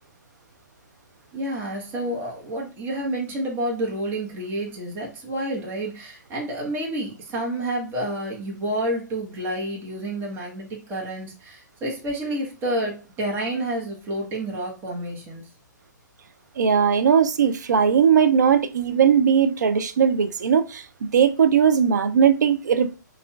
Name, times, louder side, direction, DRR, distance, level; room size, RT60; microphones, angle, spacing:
voice 1, 1.3-15.4, right 1 dB, 20° right, 1.2 m, -29 dB
voice 2, 16.6-20.8 21.1-23.0, right 7 dB, 65° right, 0.5 m, -19 dB
5.4 x 2.4 x 2.3 m
figure-of-eight pair, 125°, 10 cm